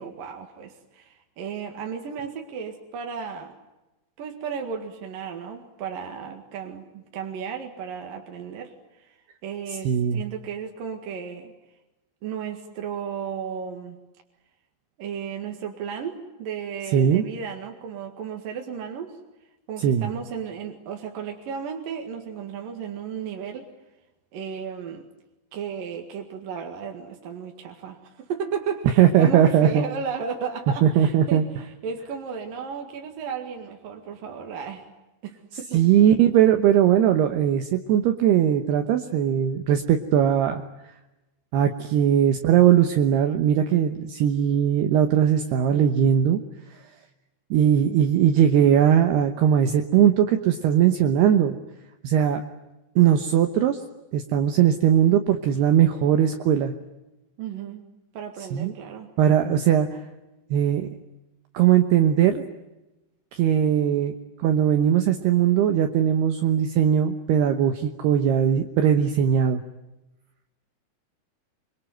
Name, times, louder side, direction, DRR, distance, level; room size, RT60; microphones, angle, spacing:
voice 1, 0.0-3.5 4.2-9.1 9.4-11.5 12.2-14.0 15.0-19.2 19.7-23.7 24.3-25.0 25.5-34.9 35.2-35.9 57.4-57.8 58.1-59.1, right 6 dB, 55° right, 3 dB, 3.1 m, -34 dB
voice 2, 9.8-10.2 16.9-17.2 19.8-20.1 29.0-29.8 30.8-31.4 35.7-40.6 41.5-46.4 47.5-51.6 52.0-52.4 53.0-53.8 54.1-56.7 58.5-58.7 59.2-59.9 60.5-60.9 61.5-62.4 63.3-64.1 64.4-69.6, right 9 dB, 70° right, 7 dB, 2.8 m, -19 dB
25.5 x 24.0 x 9.3 m, 1.0 s
omnidirectional pair, 5.6 m